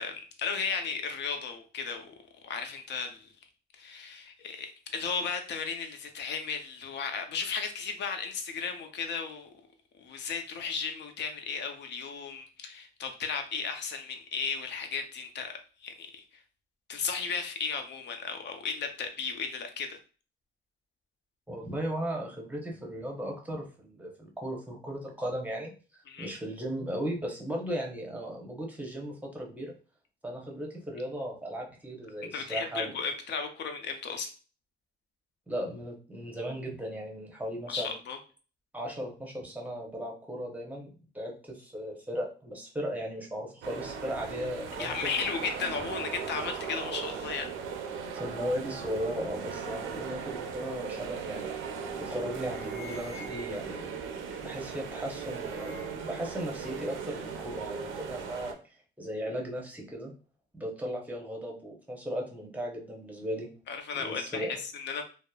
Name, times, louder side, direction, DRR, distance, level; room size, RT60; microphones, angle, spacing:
voice 1, 0.0-2.2 2.4-3.3 3.8-9.5 10.0-15.5 15.8-16.4 16.9-20.0 26.1-26.3 32.3-34.3 37.7-38.2 44.8-47.5 63.7-65.0, left 5 dB, 60° left, 6 dB, 0.5 m, -35 dB
voice 2, 21.5-29.7 30.2-32.9 35.5-37.9 38.7-40.9 41.1-45.0 48.1-51.5 52.0-58.5 59.0-60.1 60.5-63.5 63.9-64.6, equal, 10° right, -1 dB, 0.8 m, -36 dB
sound 1, 43.6-58.5, right 6 dB, 85° right, 0.4 m, -38 dB
sound 2, 51.7-51.9 52.2-53.8 54.6-56.1 56.4-57.2, left 2 dB, 10° left, 1.1 m, -51 dB
2.8 x 2.0 x 2.3 m, 0.37 s
cardioid pair, 90°, 20 cm